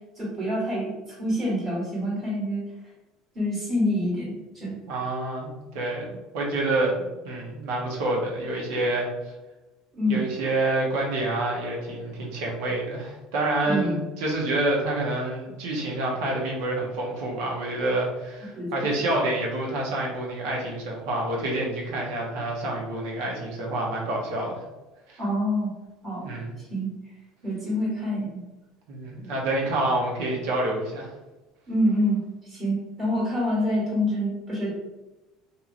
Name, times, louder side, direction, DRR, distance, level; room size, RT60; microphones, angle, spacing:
voice 1, 0.2-0.9 1.2-2.6 3.3-4.8 9.9-10.3 13.6-14.0 18.5-18.7 25.2-25.7 26.0-26.2 26.7-26.9 27.4-28.4 31.7-32.2 32.5-34.7, equal, 25° right, -6 dB, 1.3 m, -26 dB
voice 2, 4.9-9.1 10.1-24.6 25.1-25.2 26.2-26.6 28.9-31.1, right 2 dB, 75° right, -2 dB, 0.8 m, -28 dB
3.0 x 2.6 x 2.5 m, 1.1 s
cardioid pair, 165°, 0 cm